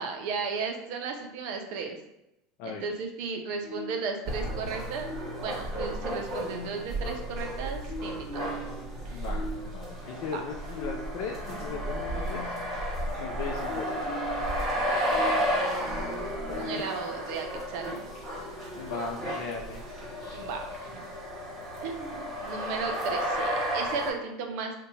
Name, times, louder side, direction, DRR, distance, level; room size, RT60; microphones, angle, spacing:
voice 1, 0.0-2.0 2.6-5.1 5.4-8.5 9.0-9.3 10.2-10.4 15.4-16.3 16.6-18.0 20.3-21.0 21.8-24.8, right 5 dB, 65° right, 4 dB, 0.5 m, -35 dB
sound 1, 3.6-17.2, equal, 20° left, 1.1 m, -42 dB
sound 2, 4.2-24.1, equal, 35° right, 1.4 m, -33 dB
voice 2, 9.1-12.4 13.2-14.0 16.5-16.8 17.1-17.2 18.8-20.4, left 5 dB, 60° left, 1 dB, 0.3 m, -38 dB
2.6 x 2.2 x 4.0 m, 0.86 s
hypercardioid pair, 80°, 0 cm